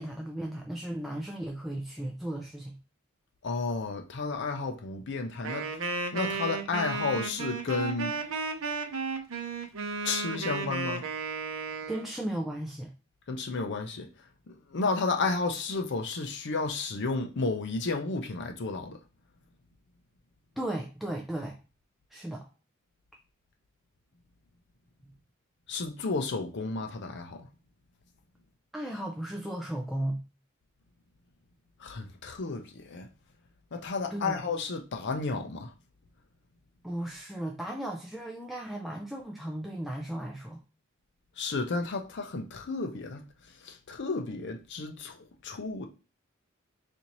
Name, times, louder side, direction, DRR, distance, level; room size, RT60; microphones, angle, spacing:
voice 1, 0.0-2.8 11.9-12.9 20.6-21.6 22.1-22.5 25.0-25.1 28.7-30.2 34.1-34.4 36.8-40.6, right 1 dB, ahead, 0.3 m, -35 dB
voice 2, 3.4-8.1 10.0-11.0 13.3-14.1 14.5-19.0 25.7-27.5 31.8-33.1 33.7-35.7 41.4-43.2 43.6-45.9, left 3 dB, 55° left, 0.5 m, -32 dB
Wind instrument woodwind instrument, 5.4-12.1, right 4 dB, 80° right, 0.7 m, -34 dB
4.2 x 2.6 x 2.9 m
head